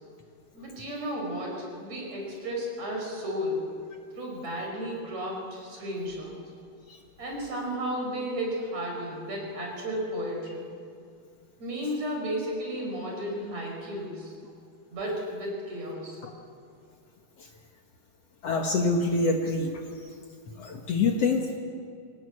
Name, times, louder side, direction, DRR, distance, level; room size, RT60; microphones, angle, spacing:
voice 1, 0.5-3.7 4.2-6.4 7.2-10.7 11.6-14.3 14.9-16.2, equal, 55° right, -1 dB, 6.5 m, -33 dB
voice 2, 18.4-20.1 20.6-21.6, left 3 dB, 55° left, 3 dB, 2.2 m, -26 dB
25.0 x 17.5 x 8.6 m, 2.4 s
omnidirectional pair, 3.7 m